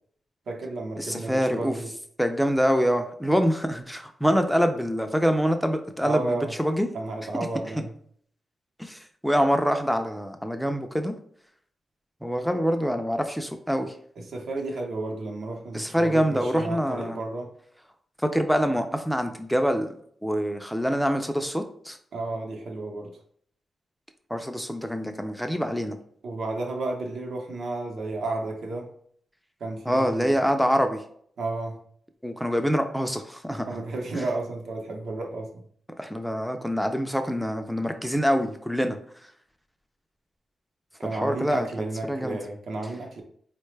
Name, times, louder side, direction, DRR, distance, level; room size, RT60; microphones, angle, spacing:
voice 1, 0.5-1.9 6.0-6.5 6.9-7.9 14.2-17.5 22.1-23.1 26.2-28.9 29.6-30.3 31.4-31.8 33.7-35.6 41.0-43.2, right 2 dB, 70° right, 1 dB, 0.7 m, -32 dB
voice 2, 1.0-1.8 2.2-6.9 7.8-7.9 8.8-11.1 12.2-13.9 15.7-17.2 18.2-19.9 20.2-22.0 24.3-26.0 29.9-31.0 32.2-33.7 34.1-34.2 36.0-39.3 41.0-41.7 42.1-42.4, equal, ahead, 6 dB, 0.3 m, -25 dB
4.0 x 2.2 x 3.2 m, 0.62 s
wide cardioid pair, 130°, 0 cm